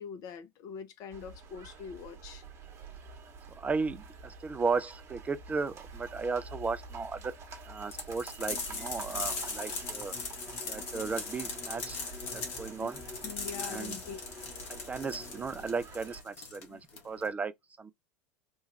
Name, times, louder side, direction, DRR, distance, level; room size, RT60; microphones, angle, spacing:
voice 1, 0.0-2.4 13.2-14.2 16.7-16.8, left 7 dB, 50° left, 0.7 m, -43 dB
sound 1, 1.1-16.2, right 4 dB, 35° right, 1.0 m, -48 dB
voice 2, 3.6-7.3 7.6-10.2 10.6-12.0 12.3-13.0 13.6-14.0 14.7-17.5 17.8-17.9, right 4 dB, 20° right, 0.4 m, -35 dB
sound 2, 7.9-17.3, left 4 dB, 70° left, 1.2 m, -40 dB
Bowed string instrument, 8.4-15.8, left 3 dB, 20° left, 1.0 m, -49 dB
3.1 x 2.3 x 3.1 m
hypercardioid pair, 80°, 8 cm